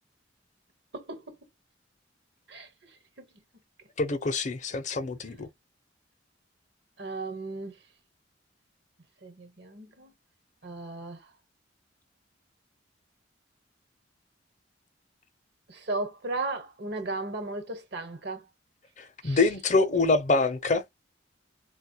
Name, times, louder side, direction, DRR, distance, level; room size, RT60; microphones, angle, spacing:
voice 1, 0.9-1.3 2.5-3.3 7.0-7.8 9.2-10.1 10.6-11.3 15.7-18.5 19.2-19.4, right 2 dB, 60° right, 1.1 m, -36 dB
voice 2, 4.0-5.5 19.0-20.8, left 3 dB, 40° left, 0.6 m, -25 dB
4.3 x 2.2 x 2.7 m
head